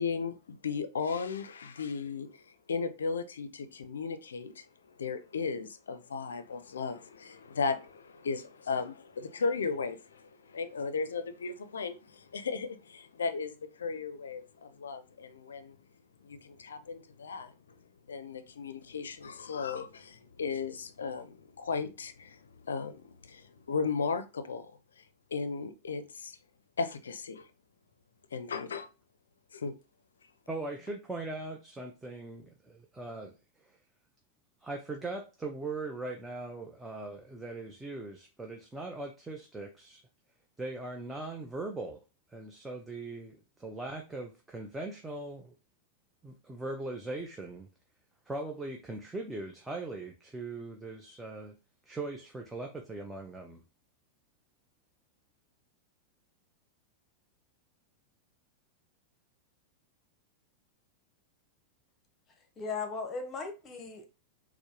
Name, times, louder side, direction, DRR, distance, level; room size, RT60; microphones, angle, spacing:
voice 1, 0.0-2.4 2.7-4.7 5.0-15.8 16.2-17.5 18.1-24.7 25.3-26.4 26.8-27.5 28.3-28.9 29.5-29.7, left 5 dB, 85° left, 0.4 m, -36 dB
voice 2, 30.5-33.3 33.6-33.8 34.6-40.0 40.6-42.0 42.3-45.5 46.2-47.7 48.3-51.6 51.9-53.6, right 2 dB, 10° right, 0.5 m, -40 dB
voice 3, 62.6-64.1, left 4 dB, 30° left, 0.9 m, -37 dB
4.3 x 2.1 x 2.9 m
hypercardioid pair, 100°, 0 cm